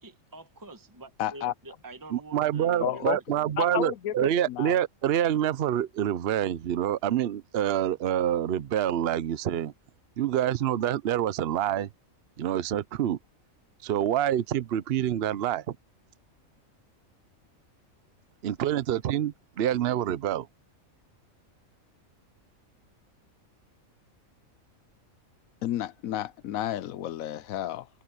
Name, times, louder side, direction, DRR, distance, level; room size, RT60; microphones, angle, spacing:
voice 1, 0.0-3.5, right 2 dB, 15° right, 1.5 m, -46 dB
voice 2, 1.2-1.5 2.8-4.7 25.6-27.9, left 12 dB, 80° left, 1.1 m, -32 dB
voice 3, 2.1-9.7 10.2-11.9 12.4-13.2 13.8-15.8 18.4-20.5, right 11 dB, 55° right, 0.8 m, -27 dB
open air
omnidirectional pair, 1.4 m